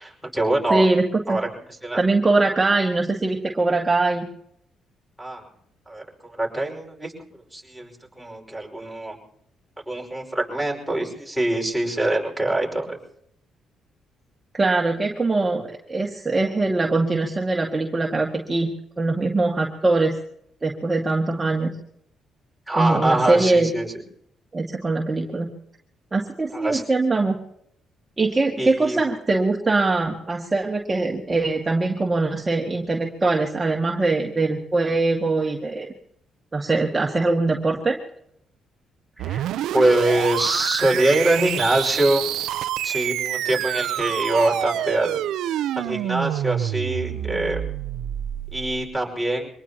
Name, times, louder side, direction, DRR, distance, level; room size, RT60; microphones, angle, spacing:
voice 1, 0.0-0.9 1.3-1.5 1.8-2.0 5.2-5.4 5.9-7.1 7.5-7.9 8.2-9.2 9.9-13.0 22.7-23.9 26.5-26.8 28.6-29.0 39.2-39.5 39.7-42.2 42.8-47.6 48.5-49.5, right 1 dB, ahead, -2 dB, 5.3 m, -24 dB
voice 2, 0.7-1.4 2.0-4.3 14.5-18.7 19.0-20.2 20.6-21.7 22.8-23.7 24.5-25.5 26.1-27.4 28.2-35.9 36.5-38.0, right 3 dB, 25° right, 0 dB, 1.9 m, -22 dB
sound 1, 39.2-48.9, right 12 dB, 85° right, 0.6 m, -27 dB
24.5 x 19.0 x 2.9 m, 0.71 s
cardioid pair, 90°, 0 cm